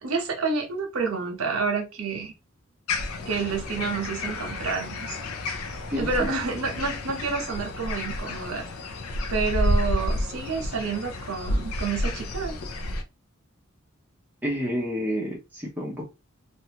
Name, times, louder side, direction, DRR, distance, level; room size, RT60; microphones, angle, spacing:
voice 1, 0.0-2.3 3.3-5.2 6.0-8.6 9.3-12.6, right 4 dB, 90° right, 0.9 m, -29 dB
sound 1, 2.9-13.0, left 1 dB, 85° left, 0.5 m, -30 dB
voice 2, 5.9-6.3 14.4-16.0, equal, 10° right, 0.7 m, -29 dB
2.6 x 2.3 x 2.8 m
head